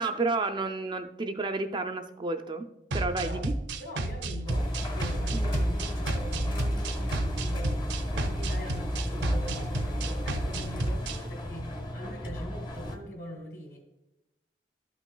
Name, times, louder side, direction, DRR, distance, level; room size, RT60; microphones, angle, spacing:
voice 1, 0.0-2.6 2.9-3.5 5.3-5.4, right 3 dB, 25° right, 6 dB, 0.4 m, -31 dB
sound 1, 2.9-11.2, right 2 dB, 75° right, 0.6 m, -32 dB
voice 2, 3.7-13.8, equal, 55° left, 3 dB, 1.7 m, -43 dB
Engine, 4.5-13.0, equal, 25° left, 0.8 m, -32 dB
11.5 x 6.0 x 2.2 m, 0.95 s
head